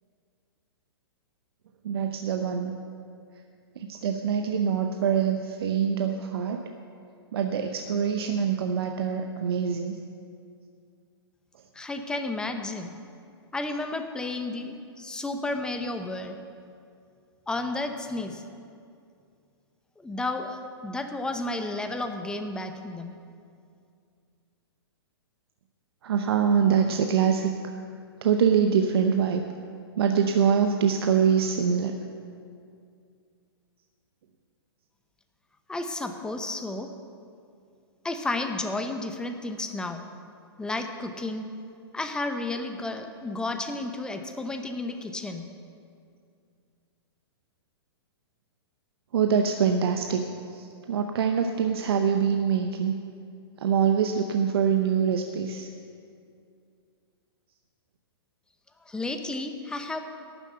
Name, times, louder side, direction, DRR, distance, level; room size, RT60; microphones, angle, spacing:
voice 1, 1.8-2.7 3.8-6.6 7.3-10.0 26.0-27.5 28.2-29.4 30.0-31.9 49.1-50.3 50.5-52.9 53.6-55.7, right 7 dB, 65° right, 5 dB, 0.8 m, -24 dB
voice 2, 11.7-13.0 13.5-16.4 17.5-18.4 20.0-23.2 35.7-36.9 38.0-40.0 40.6-41.5 41.9-45.5 58.8-60.0, left 2 dB, 5° left, 6 dB, 0.7 m, -32 dB
12.0 x 7.2 x 7.9 m, 2.4 s
hypercardioid pair, 120°, 14 cm